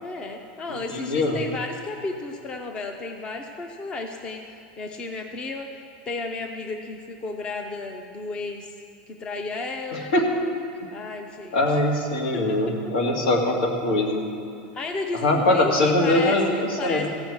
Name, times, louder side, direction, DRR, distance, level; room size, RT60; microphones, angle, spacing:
voice 1, 0.0-4.4 4.8-5.7 6.1-8.7 9.1-10.1 10.9-11.8 12.1-12.8 14.7-17.1, left 3 dB, 20° left, 4 dB, 0.6 m, -33 dB
voice 2, 0.9-1.4 9.9-10.3 11.5-14.2 15.1-17.1, left 2 dB, 75° left, 1 dB, 2.2 m, -22 dB
15.0 x 6.1 x 8.7 m, 2.7 s
supercardioid pair, 175°, 5 cm